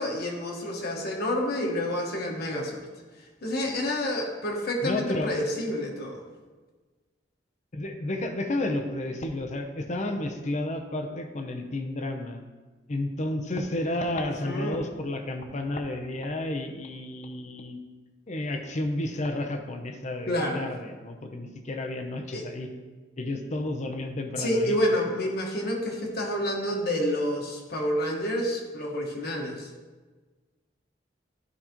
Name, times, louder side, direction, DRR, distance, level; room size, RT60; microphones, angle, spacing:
voice 1, 0.0-2.8 3.4-6.2 14.2-14.8 20.2-20.6 22.3-22.4 24.4-29.7, left 1 dB, 60° left, 0 dB, 1.3 m, -29 dB
voice 2, 4.8-5.4 7.7-12.4 12.9-17.8 18.3-22.7 23.2-24.8, left 1 dB, 40° left, 5 dB, 0.7 m, -31 dB
12.0 x 4.1 x 3.0 m, 1.3 s
head